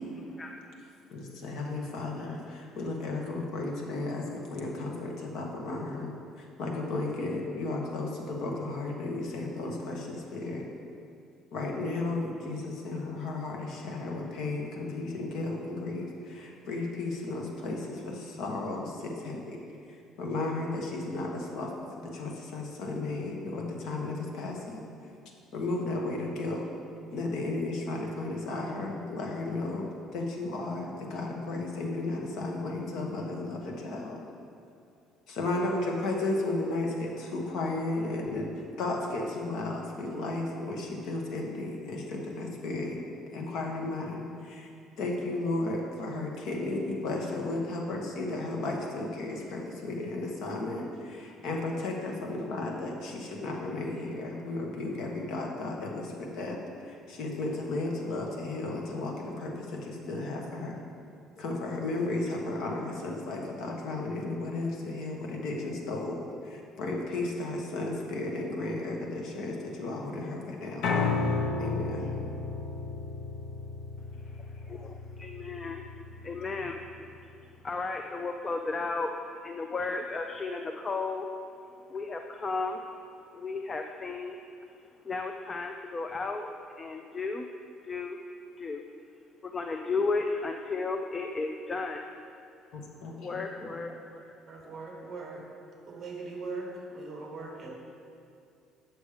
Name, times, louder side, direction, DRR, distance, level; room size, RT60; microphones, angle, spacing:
voice 1, 0.2-0.8 75.2-75.8 76.2-76.8 77.2-77.4 77.6-81.3 81.9-82.9 83.3-84.4 84.7-86.5 86.8-87.5 87.8-88.2 88.6-88.8 89.4-92.1 93.2-94.3, left 3 dB, 20° left, 4 dB, 0.3 m, -34 dB
voice 2, 1.1-10.6 11.5-19.6 19.9-21.7 22.0-24.8 25.5-26.7 27.1-34.2 35.3-43.0 43.3-44.7 45.0-60.8 61.4-70.9 71.6-72.1 92.7-93.9, left 2 dB, 55° left, 0 dB, 1.1 m, -34 dB
Piano, 70.8-77.0, left 4 dB, 80° left, 0.8 m, -33 dB
voice 3, 94.5-95.4 95.9-97.7, right 3 dB, 25° right, -1 dB, 1.3 m, -40 dB
8.4 x 6.2 x 4.9 m, 2.5 s
cardioid pair, 175°, 0 cm